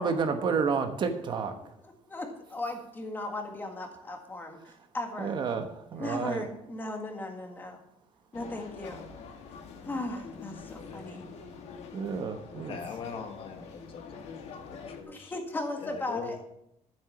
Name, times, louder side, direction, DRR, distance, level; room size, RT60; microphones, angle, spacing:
voice 1, 0.0-1.6 5.2-5.7 5.9-6.5 11.9-12.8, right 5 dB, 40° right, 7 dB, 1.1 m, -30 dB
voice 2, 2.1-5.4 6.0-7.8 8.3-9.0 9.8-11.3 15.1-16.4, left 2 dB, 15° left, 3 dB, 1.8 m, -37 dB
sound 1, 8.3-15.0, left 5 dB, 70° left, 1.6 m, -45 dB
voice 3, 12.7-14.0 14.5-15.3 15.8-16.4, left 6 dB, 50° left, 5 dB, 1.5 m, -41 dB
12.5 x 7.8 x 6.0 m, 0.80 s
cardioid pair, 180°, 11 cm